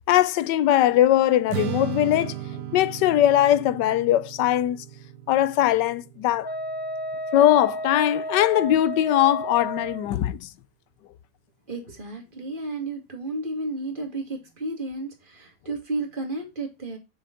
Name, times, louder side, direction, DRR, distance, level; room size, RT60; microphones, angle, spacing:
voice 1, 0.1-2.3 2.7-4.8 5.3-6.5 7.3-10.5, left 12 dB, 90° left, 1.3 m, -20 dB
Strum, 1.5-7.8, right 13 dB, 80° right, 1.2 m, -36 dB
Wind instrument woodwind instrument, 6.4-10.1, equal, 35° left, 0.4 m, -32 dB
voice 2, 11.7-17.0, right 2 dB, 30° right, 2.1 m, -32 dB
6.7 x 6.5 x 3.8 m
omnidirectional pair, 1.8 m